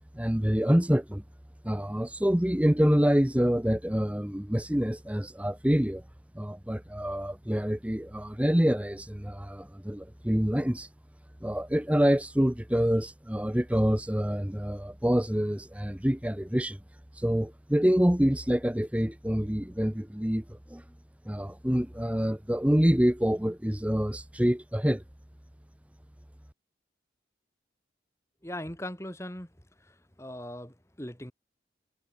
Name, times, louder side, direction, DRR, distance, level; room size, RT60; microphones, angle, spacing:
voice 1, 0.1-1.2 1.6-6.0 6.3-10.9 11.4-20.8 21.2-25.0, equal, 5° right, 0.8 m, -26 dB
voice 2, 28.4-29.5 30.2-31.3, left 1 dB, 15° left, 3.5 m, -39 dB
head